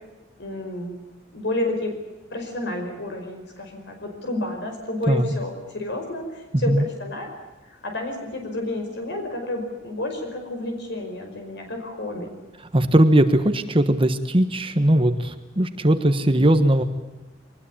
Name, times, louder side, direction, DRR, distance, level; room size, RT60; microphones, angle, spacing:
voice 1, 0.4-1.0 1.3-1.9 2.3-7.3 7.7-12.3, left 1 dB, 65° left, 3 dB, 5.3 m, -30 dB
voice 2, 6.5-6.9 12.7-16.8, right 1 dB, 30° right, 9 dB, 1.4 m, -19 dB
23.5 x 20.5 x 8.7 m, 1.1 s
head